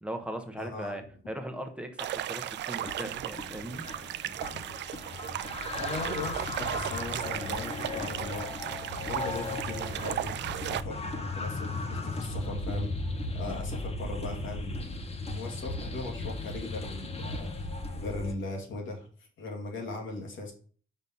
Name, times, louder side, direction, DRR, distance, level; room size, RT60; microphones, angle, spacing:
voice 1, 0.0-4.5, right 1 dB, 5° right, 5 dB, 1.0 m, -39 dB
voice 2, 0.6-1.0 5.8-8.5 9.0-12.9 13.3-15.0 15.3-17.7 17.9-20.5, left 3 dB, 75° left, 1 dB, 2.1 m, -39 dB
sound 1, 2.0-10.8, right 12 dB, 65° right, 0.4 m, -36 dB
sound 2, 2.8-18.3, left 2 dB, 30° left, 1.0 m, -36 dB
5.3 x 4.0 x 5.6 m, 0.43 s
cardioid pair, 90°, 20 cm